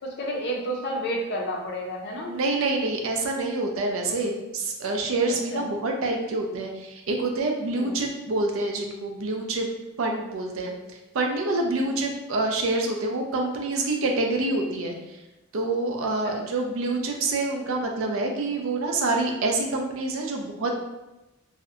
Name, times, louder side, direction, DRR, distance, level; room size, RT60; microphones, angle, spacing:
voice 1, 0.0-2.3 4.1-4.3 5.5-5.7 7.7-7.9 10.3-10.4 11.8-11.9 16.2-16.4, equal, 50° left, 0 dB, 0.4 m, -31 dB
voice 2, 2.3-9.7 10.0-10.7 11.1-14.9 15.5-20.7, right 2 dB, 65° right, 2 dB, 0.4 m, -27 dB
2.6 x 2.0 x 2.4 m, 0.98 s
head